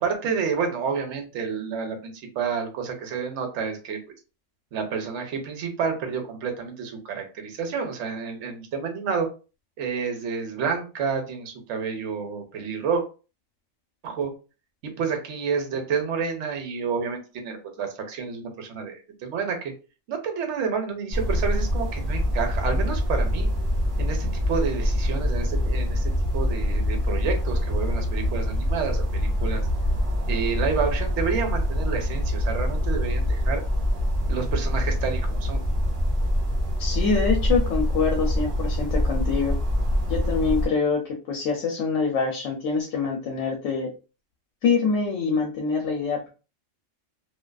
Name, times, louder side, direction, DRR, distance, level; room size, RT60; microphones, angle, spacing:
voice 1, 0.0-4.0 4.7-9.3 9.8-13.0 14.0-14.3 14.8-19.7 20.1-23.5 24.0-29.7 30.3-33.6 34.3-35.6, right 6 dB, 70° right, 4 dB, 0.9 m, -29 dB
sound 1, 21.1-40.7, equal, 30° right, 0.9 m, -25 dB
voice 2, 36.8-39.6 40.1-43.9 44.6-46.3, left 5 dB, 75° left, 2 dB, 0.9 m, -25 dB
2.5 x 2.4 x 2.2 m, 0.33 s
omnidirectional pair, 1.3 m